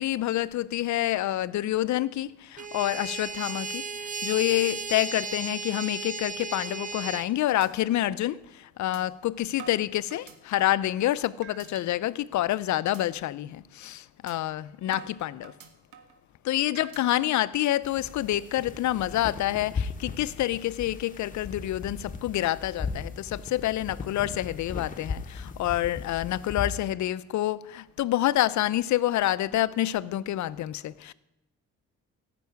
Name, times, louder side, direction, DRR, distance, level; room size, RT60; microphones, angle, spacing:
voice 1, 0.0-15.5 16.4-31.1, left 14 dB, 70° left, 0.6 m, -28 dB
sound 1, 2.6-7.3, right 4 dB, 25° right, 0.8 m, -35 dB
sound 2, 6.9-7.2 7.6-7.7 8.1-8.2 8.9-9.0 9.6-10.9 11.4-11.9 12.3-12.5 12.9-13.0 13.4-13.6 14.3-14.4 14.9-16.2 16.8-17.2, right 8 dB, 80° right, 1.6 m, -47 dB
sound 3, 17.8-26.7, left 5 dB, 25° left, 1.3 m, -37 dB
14.5 x 6.1 x 9.3 m
cardioid pair, 90°, 30 cm